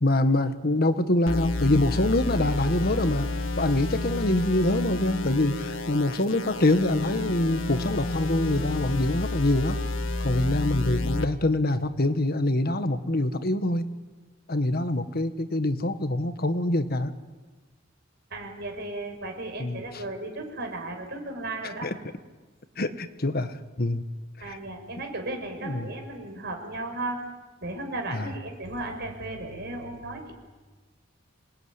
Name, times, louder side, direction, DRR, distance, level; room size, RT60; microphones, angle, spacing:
voice 1, 0.0-9.8 10.2-13.8 14.5-17.1 19.6-19.8 21.8-21.9 22.8-24.0 24.4-24.6 25.6-25.9 28.1-28.3, left 1 dB, 50° left, 9 dB, 1.5 m, -25 dB
sound 1, 1.3-11.3, left 2 dB, 80° left, 1.8 m, -30 dB
voice 2, 18.3-21.9 24.4-27.2 27.6-30.3, right 2 dB, 55° right, 3 dB, 6.0 m, -35 dB
27.0 x 20.0 x 9.7 m, 1.3 s
head